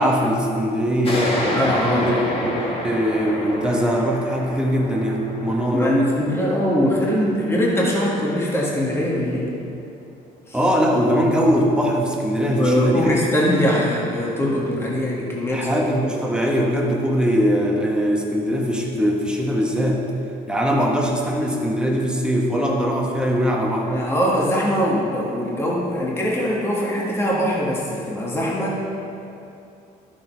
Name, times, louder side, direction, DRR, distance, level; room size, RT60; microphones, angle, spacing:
voice 1, 0.0-2.1 2.4-6.0 10.5-13.2 15.5-20.0 20.5-23.9, equal, 5° right, -2 dB, 1.4 m, -21 dB
sound 1, 1.0-8.2, left 1 dB, 35° left, 1.7 m, -29 dB
voice 2, 1.5-2.3 5.7-9.5 10.5-10.6 12.6-15.8 16.1-16.2 23.9-28.8, equal, 15° left, -4 dB, 1.6 m, -22 dB
12.0 x 6.6 x 4.6 m, 2.7 s
cardioid pair, 110°, 17 cm